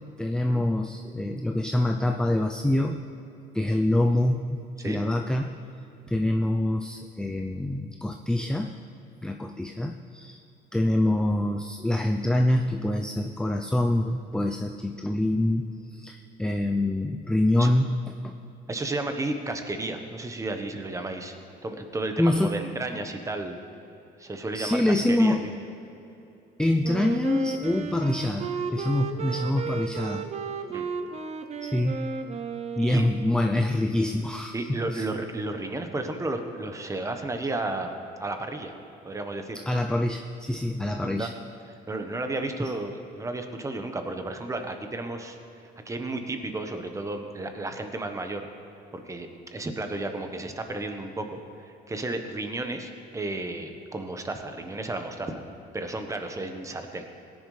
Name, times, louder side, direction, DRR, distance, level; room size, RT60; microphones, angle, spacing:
voice 1, 0.2-3.0 3.5-5.6 6.1-8.7 9.2-10.4 10.7-17.9 18.2-18.3 22.2-22.6 24.5-25.5 26.6-30.2 31.6-32.1 32.8-35.0 39.7-41.3 42.6-42.7, left 1 dB, 5° left, 3 dB, 0.5 m, -25 dB
voice 2, 18.7-21.3 21.6-23.6 24.2-25.5 29.2-29.5 30.7-30.9 32.8-33.1 34.5-37.9 38.2-38.7 39.0-39.6 41.0-41.3 41.9-45.4 45.8-48.5 48.9-55.4 55.7-57.0, right 2 dB, 20° right, 6 dB, 1.1 m, -33 dB
Wind instrument woodwind instrument, 26.8-33.5, right 5 dB, 40° right, 0.8 m, -34 dB
17.5 x 10.5 x 3.3 m, 3.0 s
cardioid pair, 110°, 17 cm